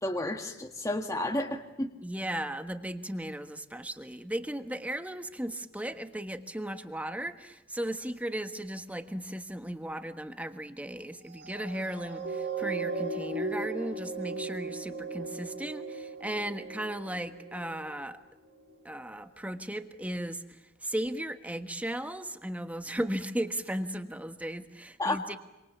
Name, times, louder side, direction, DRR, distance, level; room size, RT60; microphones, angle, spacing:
voice 1, 0.0-1.9 25.0-25.4, left 1 dB, 15° left, 3 dB, 1.6 m, -31 dB
voice 2, 2.0-18.2 18.8-20.4 20.8-25.4, right 1 dB, 10° right, 8 dB, 1.4 m, -36 dB
sound 1, 11.3-18.0 18.6-18.7, right 3 dB, 70° right, 5.5 m, -37 dB
27.0 x 26.0 x 7.2 m, 0.99 s
head